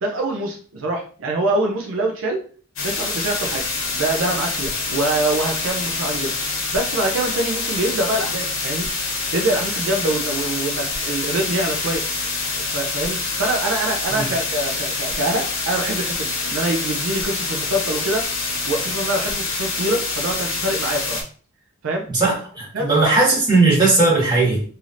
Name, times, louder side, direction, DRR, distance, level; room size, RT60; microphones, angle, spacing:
voice 1, 0.0-2.4 2.8-3.6 3.9-6.3 6.7-8.9 9.3-12.1 12.7-18.3 18.7-21.2 21.8-22.1 22.7-23.2, right 1 dB, 70° right, 1 dB, 0.5 m, -24 dB
sound 1, 2.8-21.2, left 3 dB, 80° left, 0.8 m, -26 dB
voice 2, 22.1-24.6, right 3 dB, 20° right, -5 dB, 1.4 m, -17 dB
3.2 x 2.7 x 2.4 m, 0.41 s
head